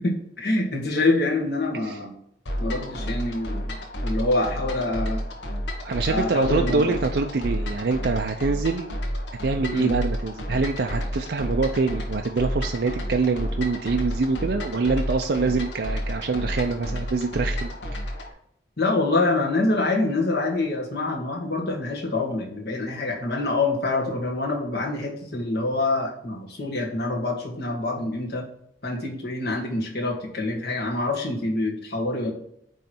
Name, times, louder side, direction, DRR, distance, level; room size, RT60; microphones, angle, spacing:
voice 1, 0.0-2.2 2.6-5.2 6.1-7.0 9.7-9.9 18.8-28.4 28.8-32.3, left 2 dB, 60° left, -1 dB, 1.8 m, -26 dB
sound 1, 2.5-18.3, equal, 90° left, 1.3 m, -30 dB
voice 2, 5.8-9.0 9.4-17.7, right 4 dB, 65° right, 4 dB, 0.5 m, -25 dB
9.0 x 3.2 x 4.4 m, 0.72 s
head